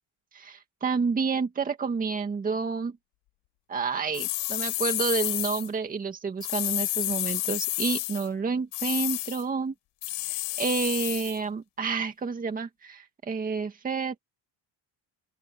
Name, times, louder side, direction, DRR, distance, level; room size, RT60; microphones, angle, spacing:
voice 1, 0.3-3.0 3.7-9.7 10.3-14.2, right 5 dB, 20° right, 2.1 m, -29 dB
sound 1, 4.1-5.7 6.4-8.3 8.7-9.4 10.0-11.4, left 20 dB, 80° left, 5.6 m, -30 dB
open air
cardioid pair, 175°, 43 cm